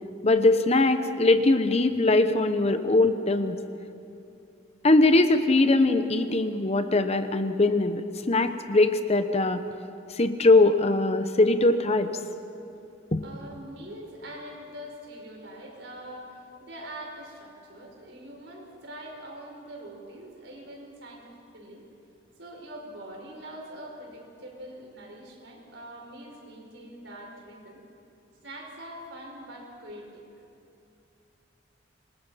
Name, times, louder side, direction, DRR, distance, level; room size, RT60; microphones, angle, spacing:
voice 1, 0.2-3.6 4.8-9.6 10.1-12.1 13.1-13.2, left 2 dB, 35° left, 9 dB, 0.9 m, -21 dB
voice 2, 13.2-21.9 22.4-27.8 28.4-30.2, right 1 dB, 65° right, 0 dB, 5.2 m, -43 dB
27.0 x 21.0 x 5.7 m, 2.8 s
head